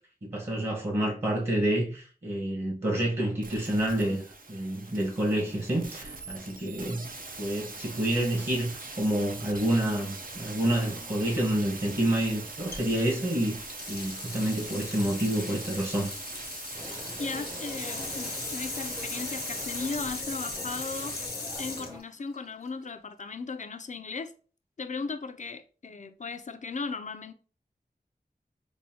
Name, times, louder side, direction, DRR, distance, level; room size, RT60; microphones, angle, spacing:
voice 1, 0.2-4.2 4.5-13.6 13.9-16.1, right 1 dB, 40° right, 1.1 m, -28 dB
sound 1, 3.4-21.3 21.6-21.7, right 3 dB, 60° right, 0.6 m, -42 dB
sound 2, 12.7-22.9, left 3 dB, 90° left, 0.9 m, -39 dB
sound 3, 16.7-22.0, equal, 25° right, 0.7 m, -44 dB
voice 2, 17.2-21.2 21.6-24.3 24.8-27.3, left 4 dB, 50° left, 0.4 m, -37 dB
5.5 x 2.2 x 2.7 m
wide cardioid pair, 70°, 16 cm